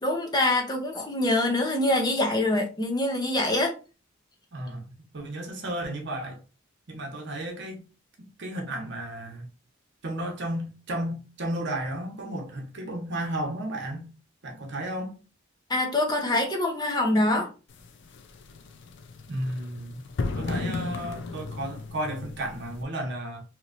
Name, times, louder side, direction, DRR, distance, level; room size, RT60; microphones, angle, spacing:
voice 1, 0.0-3.8 15.7-17.5, left 1 dB, 20° left, 0.6 m, -25 dB
voice 2, 4.5-4.9 5.1-6.4 6.9-7.8 8.2-9.4 10.0-14.1 14.4-15.2 19.3-20.0 20.3-23.4, right 1 dB, 60° right, 0.9 m, -33 dB
sound 1, 17.7-22.8, left 3 dB, 60° left, 0.4 m, -35 dB
3.0 x 2.8 x 2.5 m
head